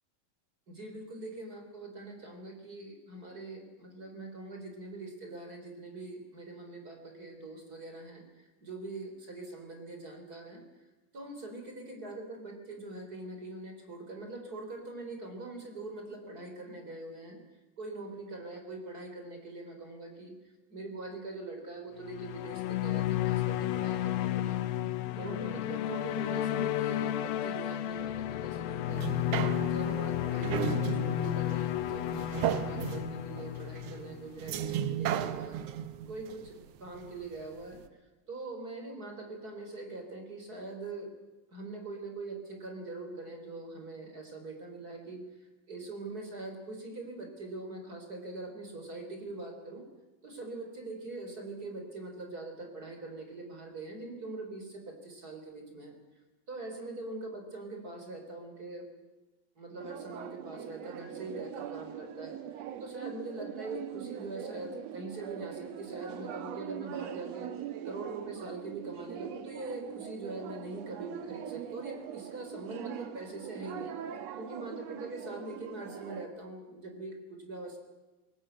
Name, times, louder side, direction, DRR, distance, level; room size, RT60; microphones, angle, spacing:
voice 1, 0.7-10.6 11.1-17.4 17.8-20.3 20.7-24.6 25.2-29.3 29.7-35.6 36.1-37.8 38.3-41.1 41.5-49.8 50.2-56.0 56.5-58.9 59.6-73.9 74.4-77.8, right 2 dB, 25° right, 4 dB, 3.6 m, -43 dB
sound 1, 22.0-34.5, left 13 dB, 80° left, 2.7 m, -32 dB
sound 2, 28.9-37.4 37.9-38.0, right 9 dB, 85° right, 1.3 m, -35 dB
sound 3, 59.8-76.3, right 10 dB, 65° right, 1.8 m, -42 dB
21.0 x 18.0 x 8.9 m, 1.2 s
omnidirectional pair, 4.2 m